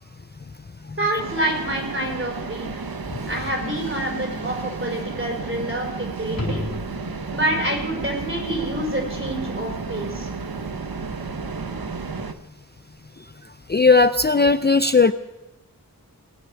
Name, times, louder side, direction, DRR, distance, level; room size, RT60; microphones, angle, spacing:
voice 1, 1.0-2.8 3.3-6.6 7.3-10.3, right 1 dB, 35° right, 1 dB, 4.3 m, -27 dB
sound 1, 1.2-12.3, right 4 dB, 75° right, 0.9 m, -32 dB
sound 2, 6.2-7.5 12.4-12.5, left 1 dB, 70° left, 3.1 m, -31 dB
voice 2, 13.7-15.1, left 4 dB, 30° left, 11 dB, 0.4 m, -16 dB
19.0 x 6.7 x 8.9 m, 1.0 s
wide cardioid pair, 40°, 36 cm